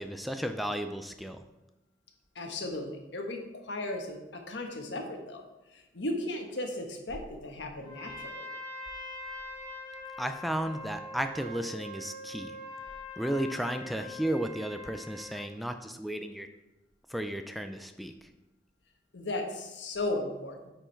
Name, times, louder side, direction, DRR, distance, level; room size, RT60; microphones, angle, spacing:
voice 1, 0.0-1.4 10.2-12.6 13.2-16.5 17.1-18.3, right 1 dB, ahead, 7 dB, 0.3 m, -34 dB
voice 2, 2.3-5.5 5.7-8.4 19.1-20.7, left 2 dB, 85° left, 3 dB, 1.2 m, -36 dB
Trumpet, 7.8-15.5, left 1 dB, 25° left, 2.1 m, -43 dB
8.9 x 4.7 x 4.5 m, 1.0 s
head